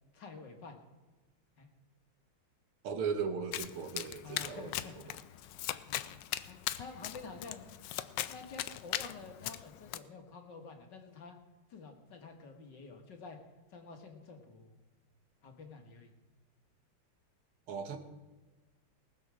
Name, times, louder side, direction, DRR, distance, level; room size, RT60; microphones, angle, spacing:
voice 1, 0.1-0.8 1.6-1.7 4.2-5.1 5.9-6.0 6.5-7.7 8.3-11.4 11.7-13.4 13.7-14.7 15.4-16.1, left 4 dB, 55° left, 4 dB, 2.1 m, -49 dB
voice 2, 2.8-4.7 5.1-5.2 17.7-18.0, right 6 dB, 80° right, 8 dB, 2.1 m, -37 dB
Domestic sounds home sounds, 3.5-10.0, left 13 dB, 75° left, 1.1 m, -39 dB
19.0 x 7.2 x 6.2 m, 1.2 s
omnidirectional pair, 2.4 m